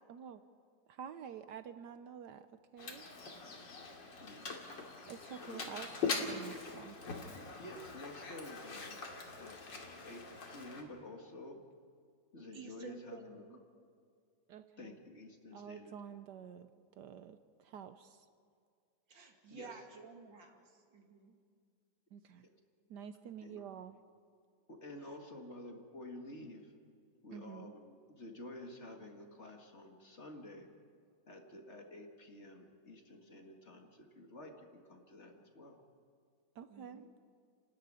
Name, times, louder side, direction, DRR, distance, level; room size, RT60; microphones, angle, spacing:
voice 1, 0.1-0.4 0.9-2.5 2.7-3.0 5.1-7.0 14.5-15.0 15.5-18.3 22.1-22.5 22.9-24.0 27.3-27.7 36.5-37.0, right 8 dB, 70° right, 11 dB, 1.3 m, -49 dB
Mechanisms, 2.8-10.8, left 4 dB, 80° left, 3.1 m, -42 dB
voice 2, 4.2-4.7 5.4-5.7 7.6-9.0 9.4-9.6 10.0-11.6 12.3-13.4 14.8-15.9 19.5-19.8 23.4-23.6 24.7-26.7 27.2-30.7 31.3-35.8, left 1 dB, 40° left, 3 dB, 2.1 m, -50 dB
voice 3, 12.5-13.6 19.1-20.6 20.9-21.3 36.7-37.1, right 5 dB, 90° right, 3 dB, 3.0 m, -52 dB
30.0 x 12.5 x 9.7 m, 2.2 s
omnidirectional pair, 2.0 m